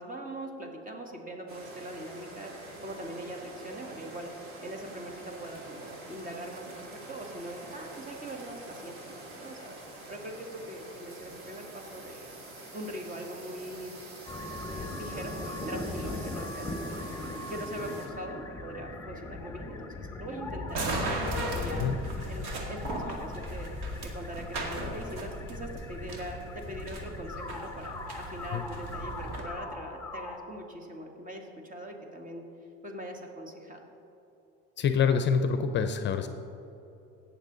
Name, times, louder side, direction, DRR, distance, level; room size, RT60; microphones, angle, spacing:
voice 1, 0.0-2.5 2.8-4.3 4.6-9.7 10.1-12.2 12.7-13.9 14.5-21.8 22.3-32.4 32.8-33.9, right 1 dB, 30° right, 2 dB, 1.8 m, -42 dB
sound 1, 1.5-18.1, right 1 dB, 50° right, 2.4 m, -46 dB
sound 2, 14.3-30.4, left 2 dB, 10° left, 1.4 m, -39 dB
sound 3, 20.7-29.4, right 2 dB, 65° right, 2.0 m, -37 dB
voice 2, 34.8-36.3, left 6 dB, 40° left, 8 dB, 0.6 m, -26 dB
17.0 x 6.9 x 3.9 m, 3.0 s
supercardioid pair, 105°, 29 cm